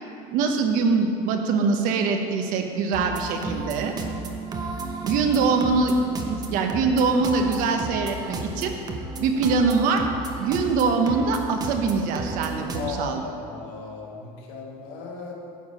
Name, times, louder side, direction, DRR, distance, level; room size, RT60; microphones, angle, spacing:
voice 1, 0.3-3.9 5.0-5.9 6.3-8.7 9.2-10.1 10.4-13.2, right 4 dB, 65° right, 4 dB, 1.0 m, -23 dB
sound 1, 2.9-12.9, right 3 dB, 25° right, 0.8 m, -33 dB
voice 2, 12.7-15.3, left 4 dB, 80° left, -1 dB, 1.8 m, -36 dB
9.3 x 4.6 x 7.5 m, 2.6 s
cardioid pair, 140°, 15 cm